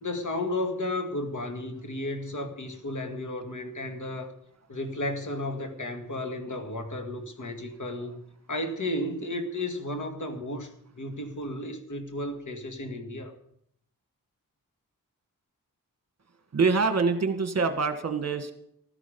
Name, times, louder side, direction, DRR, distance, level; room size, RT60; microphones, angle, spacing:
voice 1, 0.0-4.3 4.7-10.7 10.9-13.3, left 1 dB, 60° left, 2.2 m, -33 dB
voice 2, 16.5-18.5, right 4 dB, 50° right, 1.5 m, -25 dB
15.0 x 12.5 x 5.3 m
wide cardioid pair, 85°, 34 cm